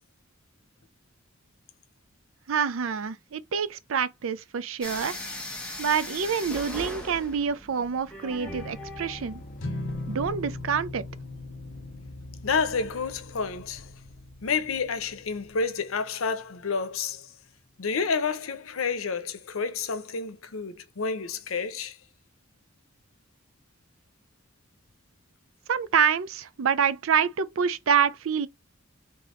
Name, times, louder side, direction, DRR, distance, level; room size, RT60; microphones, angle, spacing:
voice 1, 2.5-5.2 5.8-9.4 10.1-11.0 25.7-28.5, right 7 dB, 75° right, 0.4 m, -26 dB
sound 1, 4.8-10.3, left 1 dB, 5° left, 1.1 m, -40 dB
sound 2, 8.4-15.6, left 1 dB, 40° left, 0.6 m, -46 dB
sound 3, 9.6-16.0, left 2 dB, 65° left, 1.3 m, -40 dB
voice 2, 12.4-13.9 14.4-17.3 17.8-22.0, left 5 dB, 90° left, 0.7 m, -29 dB
3.5 x 3.4 x 4.2 m
head